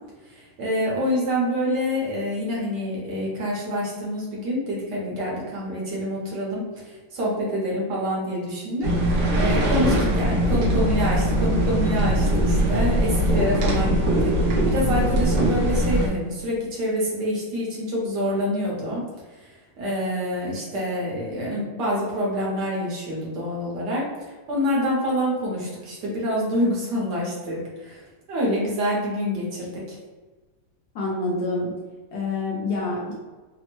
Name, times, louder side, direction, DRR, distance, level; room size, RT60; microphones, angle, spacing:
voice 1, 0.3-19.0 19.4-24.0 24.5-28.0 28.3-30.0, equal, 65° right, -4 dB, 1.2 m, -26 dB
sound 1, 8.8-16.1, right 1 dB, 80° right, 0.7 m, -21 dB
voice 2, 30.9-31.7 32.1-33.1, left 2 dB, 75° left, -4 dB, 0.9 m, -27 dB
3.4 x 2.0 x 2.9 m, 1.3 s
omnidirectional pair, 2.2 m